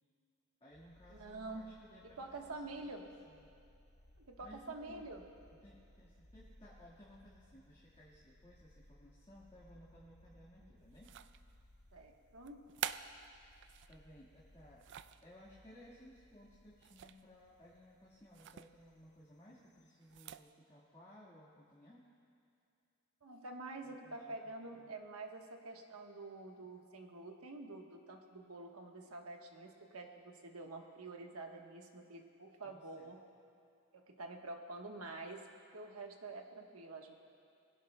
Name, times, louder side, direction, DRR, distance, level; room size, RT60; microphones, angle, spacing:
voice 1, 0.6-3.5 4.4-5.1 5.5-11.1 13.9-14.9 15.2-22.1 23.8-24.3 24.7-24.9 32.6-33.1, equal, 25° left, -7 dB, 1.6 m, -60 dB
sound 1, 0.7-19.9, left 1 dB, 90° left, 1.2 m, -65 dB
voice 2, 1.1-1.6 2.0-3.0 4.3-5.2 10.6-10.7 11.9-12.6 23.2-33.2 33.9-35.4 35.7-37.1, right 2 dB, 80° right, 3 dB, 1.2 m, -48 dB
sound 2, 11.0-11.6 12.5-14.0 14.5-15.3 16.8-17.3 17.6-17.8 18.3-18.7 20.0-20.5, right 10 dB, 55° right, 0.3 m, -46 dB
21.0 x 16.5 x 2.2 m, 2.6 s
head